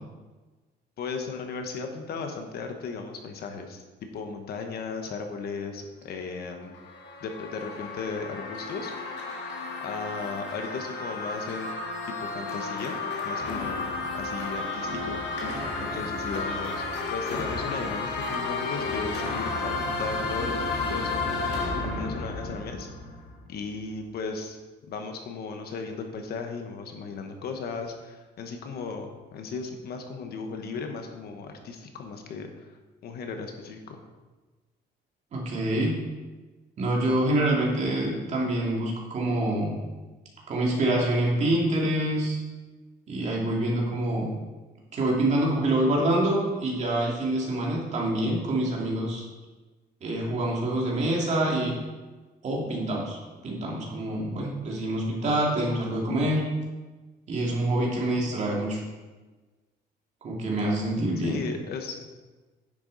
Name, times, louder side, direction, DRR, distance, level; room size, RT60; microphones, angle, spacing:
voice 1, 1.0-3.8 4.1-6.7 7.2-8.9 9.8-11.8 12.2-13.0 13.2-15.2 15.8-21.1 21.8-22.9 23.5-24.6 24.9-32.5 33.0-34.0 61.2-62.1, left 4 dB, 60° left, 5 dB, 1.1 m, -36 dB
sound 1, 6.5-23.5, left 3 dB, 75° left, 1.9 m, -32 dB
voice 2, 35.3-36.0 36.8-39.8 40.5-42.4 43.1-44.3 44.9-49.2 50.0-51.7 52.4-53.2 53.4-56.4 57.3-58.8 60.2-61.4, right 1 dB, 40° right, -3 dB, 2.3 m, -26 dB
10.0 x 7.0 x 4.0 m, 1.2 s
cardioid pair, 160°, 18 cm